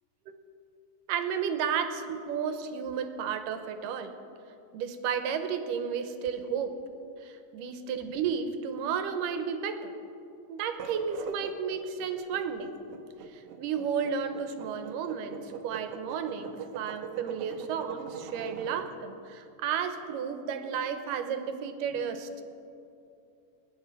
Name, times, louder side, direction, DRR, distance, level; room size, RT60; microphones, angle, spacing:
voice 1, 1.1-4.1 4.7-6.7 7.2-9.9 10.5-12.7 13.3-22.5, right 7 dB, 90° right, 8 dB, 2.5 m, -32 dB
sound 1, 10.7-18.9, right 8 dB, 70° right, 2.1 m, -42 dB
22.5 x 10.5 x 4.9 m, 2.7 s
omnidirectional pair, 3.8 m